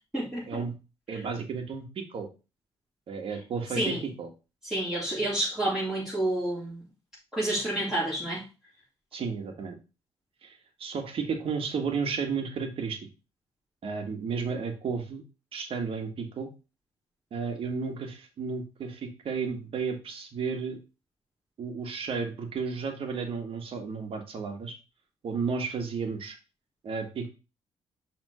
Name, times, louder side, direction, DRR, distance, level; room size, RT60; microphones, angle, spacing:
voice 1, 0.1-0.5 1.1-1.2 3.8-4.0 4.6-6.8 7.3-8.4, right 1 dB, 5° right, -11 dB, 4.2 m, -29 dB
voice 2, 1.1-2.3 3.1-4.3 9.1-9.8 10.4-13.0 13.8-15.2 15.5-16.5 17.3-20.8 21.6-24.7 25.2-26.3 26.8-27.3, right 5 dB, 60° right, 5 dB, 1.7 m, -33 dB
6.1 x 3.7 x 5.0 m, 0.30 s
cardioid pair, 95°, 11 cm